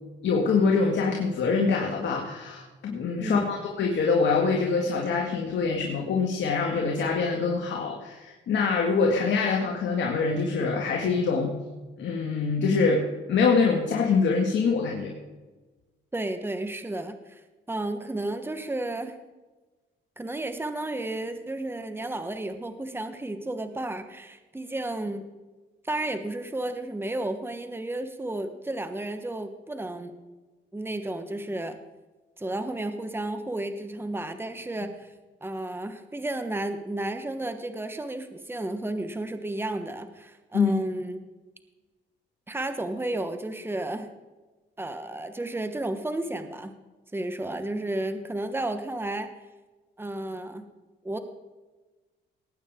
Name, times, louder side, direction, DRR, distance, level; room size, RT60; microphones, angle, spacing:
voice 1, 0.2-11.5 12.0-15.1 40.5-40.7, left 4 dB, 65° left, 0 dB, 2.1 m, -24 dB
voice 2, 16.1-17.4 17.7-19.2 20.2-25.3 25.8-30.1 30.7-31.8 32.4-35.1 35.4-41.2 42.5-44.1 44.8-46.7 47.1-49.3 50.0-50.7 51.0-51.2, right 1 dB, 10° right, 8 dB, 1.3 m, -32 dB
19.0 x 9.0 x 3.7 m, 1.2 s
cardioid pair, 90°, 20 cm